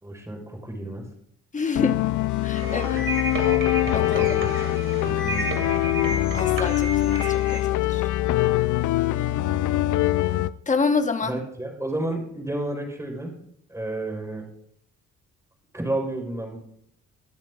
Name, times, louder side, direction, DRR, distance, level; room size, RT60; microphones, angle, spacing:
voice 1, 0.0-1.0 2.9-3.0 4.1-4.8 5.0-5.6 9.8-9.9 11.2-13.3 13.7-14.4 15.7-16.6, right 1 dB, 10° right, 1 dB, 3.9 m, -31 dB
voice 2, 1.5-2.0 2.4-3.0 3.9-4.2 6.3-8.0 10.7-11.3, left 4 dB, 25° left, 7 dB, 1.1 m, -27 dB
sound 1, 1.8-10.5, left 15 dB, 75° left, 0.5 m, -23 dB
sound 2, 2.5-7.6, right 2 dB, 40° right, 2.6 m, -32 dB
22.0 x 7.4 x 2.4 m, 0.69 s
cardioid pair, 90°, 30 cm